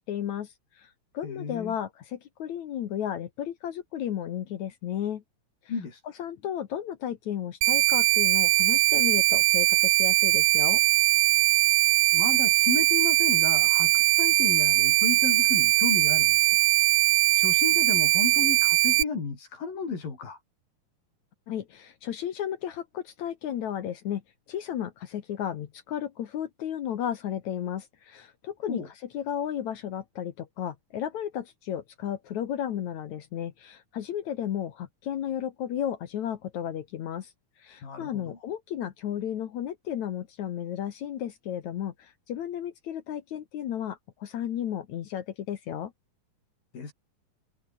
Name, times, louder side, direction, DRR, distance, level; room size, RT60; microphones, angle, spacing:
voice 1, 0.0-5.2 6.2-10.8 21.5-24.2 24.5-28.8 29.1-37.3 37.6-45.9, left 10 dB, 65° left, 2.5 m, -33 dB
voice 2, 1.2-1.7 5.7-6.0 12.1-16.6 17.4-20.4 28.7-28.9 37.8-38.4 46.7-46.9, left 5 dB, 80° left, 7.2 m, -33 dB
sound 1, 7.6-19.0, right 20 dB, 85° right, 2.3 m, -21 dB
omnidirectional pair, 3.9 m